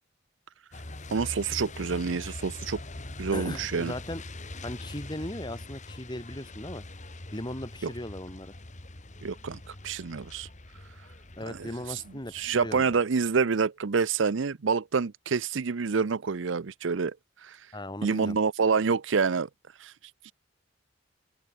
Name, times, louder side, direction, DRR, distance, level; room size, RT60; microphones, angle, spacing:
Truck, 0.7-13.0, left 2 dB, 40° left, 2.1 m, -43 dB
voice 1, 1.1-2.8 3.2-3.9 7.8-7.9 9.2-10.5 11.5-12.0 12.3-17.2 17.4-17.6 18.0-19.5 19.8-19.9 20.2-20.3, right 5 dB, 70° right, 0.6 m, -27 dB
voice 2, 3.3-4.2 4.6-6.8 7.3-8.6 11.4-12.9 17.7-18.4, left 1 dB, 25° left, 4.7 m, -38 dB
open air
head